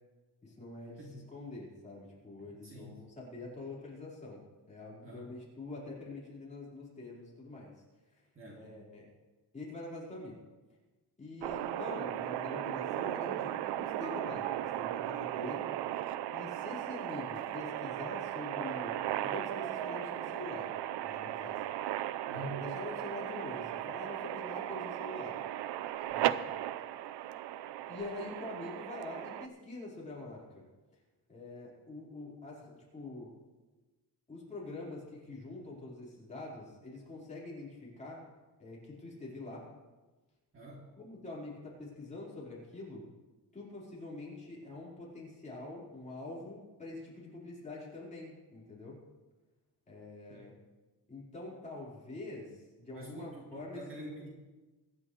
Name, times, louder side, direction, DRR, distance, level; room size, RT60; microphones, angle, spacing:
voice 1, 0.4-1.0 1.3-4.4 4.7-7.7 8.5-9.1 9.5-10.4 11.2-15.7 16.3-20.7 21.0-21.6 22.3-25.4 26.1-26.3 27.9-30.6 31.3-33.4 34.3-38.2 38.6-39.6 41.0-43.1 43.5-49.0 49.9-50.5 51.1-54.0, left 2 dB, 20° left, -6 dB, 4.3 m, -45 dB
voice 2, 2.4-3.0 5.0-5.3 8.3-8.7 22.3-22.7 26.2-26.4 40.5-40.9 50.3-50.5 52.9-54.3, right 1 dB, 30° right, -3 dB, 2.5 m, -47 dB
sound 1, 11.4-29.5, right 12 dB, 90° right, 0.6 m, -36 dB
23.5 x 10.5 x 3.2 m, 1.2 s
cardioid pair, 165°, 39 cm